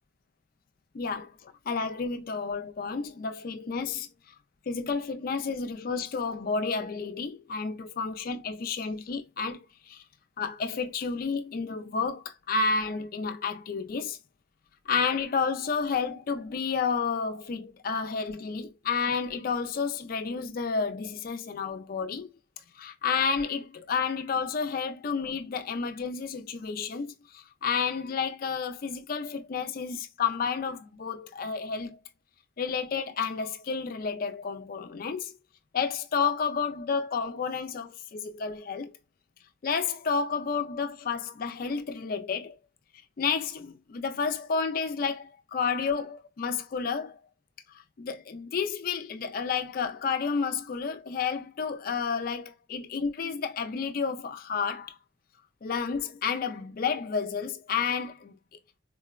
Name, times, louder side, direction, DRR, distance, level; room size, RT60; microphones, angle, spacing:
voice 1, 0.9-4.1 4.7-9.6 9.9-10.0 10.4-14.2 14.9-22.3 22.7-32.0 32.6-35.3 35.7-38.9 39.6-42.6 43.2-47.2 48.0-55.0 55.6-58.3, left 5 dB, 45° left, 0.3 m, -31 dB
3.6 x 2.1 x 2.3 m
head